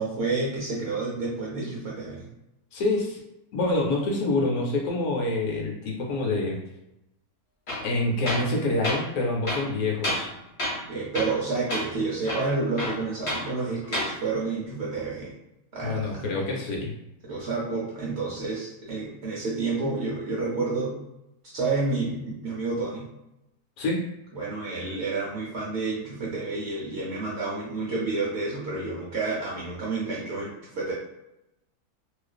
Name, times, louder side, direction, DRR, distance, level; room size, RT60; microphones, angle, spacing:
voice 1, 0.0-2.2 10.9-15.4 15.7-16.3 17.2-21.0 21.5-23.1 24.3-30.9, right 3 dB, 60° right, -5 dB, 0.8 m, -29 dB
voice 2, 2.7-3.2 3.5-6.6 7.8-10.3 15.8-17.0 23.8-24.1, left 2 dB, 75° left, -1 dB, 1.1 m, -26 dB
Tools, 7.7-7.9 8.3-8.5 8.8-9.0 9.4-10.3 10.6-10.9 11.1-11.4 11.7-11.9 12.2-13.5 13.8-14.1, left 1 dB, 50° left, 1.0 m, -30 dB
2.4 x 2.4 x 2.2 m, 0.89 s
omnidirectional pair, 1.6 m